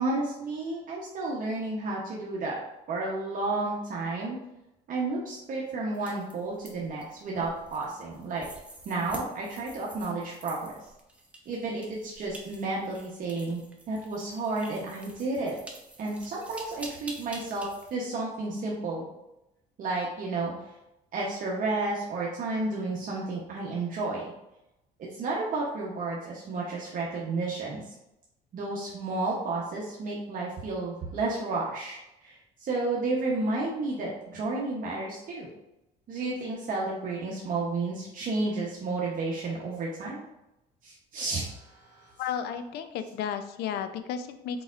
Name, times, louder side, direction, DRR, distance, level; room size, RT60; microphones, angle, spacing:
voice 1, 0.0-2.6 2.9-4.4 4.9-8.4 8.9-10.7 11.5-13.6 13.9-15.5 16.0-19.1 19.8-20.5 21.1-24.3 25.0-27.8 28.5-35.5 36.1-40.2 40.8-42.3, right 3 dB, 55° right, -4 dB, 1.0 m, -32 dB
sound 1, 5.9-17.9, right 1 dB, 5° right, 0.8 m, -48 dB
voice 2, 42.2-44.6, left 8 dB, 75° left, 9 dB, 0.5 m, -33 dB
4.6 x 4.0 x 2.5 m, 0.90 s
cardioid pair, 110°, 17 cm